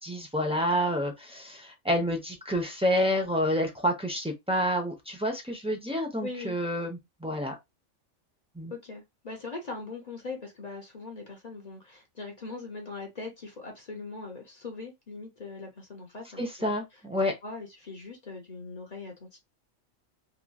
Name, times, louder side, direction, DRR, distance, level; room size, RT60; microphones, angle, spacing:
voice 1, 0.0-7.5 8.5-8.7 16.4-17.3, equal, 10° right, 0.3 m, -29 dB
voice 2, 6.2-6.5 8.7-16.7 17.4-19.4, left 3 dB, 40° left, 0.7 m, -41 dB
3.0 x 2.4 x 2.2 m
omnidirectional pair, 1.3 m